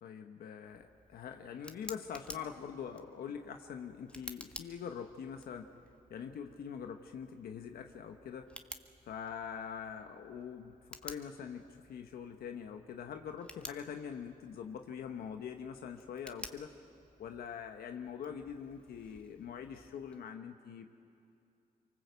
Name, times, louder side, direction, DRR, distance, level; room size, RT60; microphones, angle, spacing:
voice 1, 0.0-5.7 6.1-8.5 9.0-16.7 17.2-20.9, left 7 dB, 90° left, 6 dB, 1.1 m, -44 dB
Tick, 0.6-20.3, left 1 dB, 5° left, 1.6 m, -54 dB
25.0 x 23.5 x 8.2 m, 2.6 s
cardioid pair, 60°, 15 cm